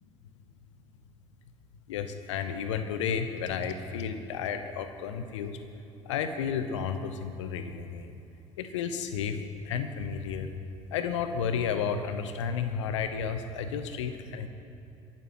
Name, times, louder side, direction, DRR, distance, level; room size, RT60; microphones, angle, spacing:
voice 1, 1.9-5.6 6.1-8.2 8.6-9.4 9.6-10.5 10.9-14.5, left 7 dB, 70° left, 9 dB, 0.9 m, -32 dB
23.5 x 12.0 x 3.0 m, 2.7 s
figure-of-eight pair, 60°, 16 cm